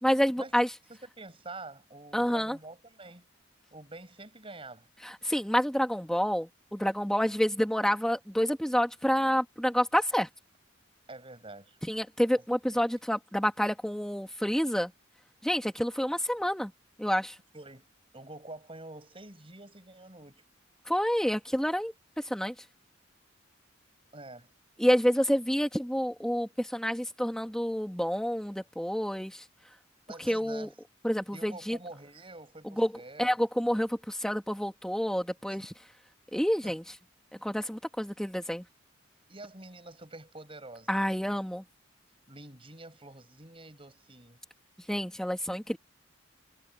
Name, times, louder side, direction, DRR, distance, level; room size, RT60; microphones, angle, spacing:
voice 1, 0.0-0.7 2.1-2.6 5.0-10.3 11.8-14.9 15.4-16.7 17.0-17.4 20.8-22.6 24.8-29.5 30.2-30.7 31.0-31.8 32.6-32.9 33.2-35.7 36.3-36.8 37.4-38.6 40.9-41.6 44.9-45.8, equal, 5° left, 1.7 m, -28 dB
voice 2, 1.2-3.2 3.7-4.9 11.1-11.8 17.5-17.9 18.1-20.4 24.1-24.5 30.1-30.7 31.3-33.4 35.5-35.6 36.6-36.7 39.3-40.9 42.3-44.4, right 2 dB, 25° right, 7.9 m, -47 dB
head